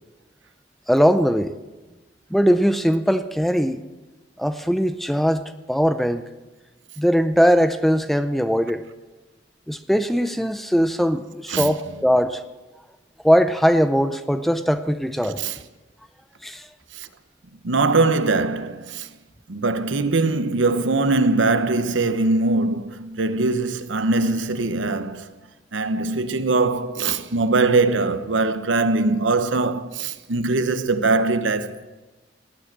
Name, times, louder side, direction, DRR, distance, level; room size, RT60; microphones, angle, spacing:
voice 1, 0.9-1.5 2.3-3.8 4.4-6.2 7.0-8.8 9.7-12.4 13.2-15.4 16.4-16.7, equal, ahead, 0.5 m, -20 dB
voice 2, 15.2-15.6 16.9-17.1 17.6-19.1 19.5-25.3 25.7-31.9, right 3 dB, 90° right, 0.9 m, -22 dB
18.5 x 9.3 x 7.4 m
head